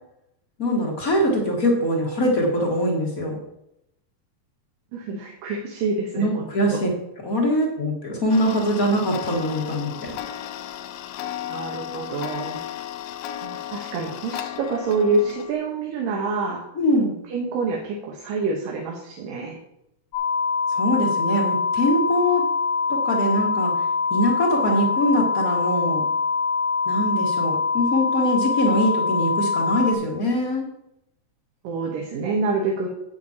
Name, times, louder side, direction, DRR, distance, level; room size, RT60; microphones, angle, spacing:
voice 1, 0.6-3.4 6.1-6.9 7.2-10.2 16.8-17.1 20.7-22.4 22.9-23.7 24.1-26.0 26.8-30.7, equal, 40° left, 0 dB, 1.2 m, -23 dB
voice 2, 4.9-6.9 11.5-12.6 13.4-16.6 17.3-19.6 31.6-32.9, right 3 dB, 80° right, -1 dB, 3.0 m, -27 dB
Tick-tock, 8.3-15.5, left 11 dB, 90° left, 2.4 m, -34 dB
sound 1, 20.1-29.9, left 5 dB, 65° left, 2.3 m, -24 dB
9.4 x 8.5 x 4.3 m, 0.82 s
omnidirectional pair, 3.9 m